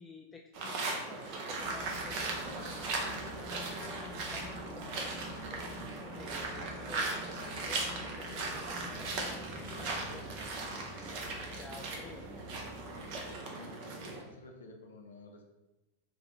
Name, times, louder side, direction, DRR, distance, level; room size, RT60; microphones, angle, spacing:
voice 1, 0.0-2.9 3.4-12.2, left 3 dB, 15° left, 1 dB, 0.3 m, -52 dB
sound 1, 0.5-14.2, right 3 dB, 45° right, 0.7 m, -38 dB
sound 2, 1.6-13.4, left 1 dB, 5° right, 0.7 m, -48 dB
voice 2, 3.0-3.4 13.5-15.5, left 2 dB, 70° left, 2 dB, 0.6 m, -52 dB
3.2 x 2.5 x 4.3 m, 1.0 s
figure-of-eight pair, 90°, 0 cm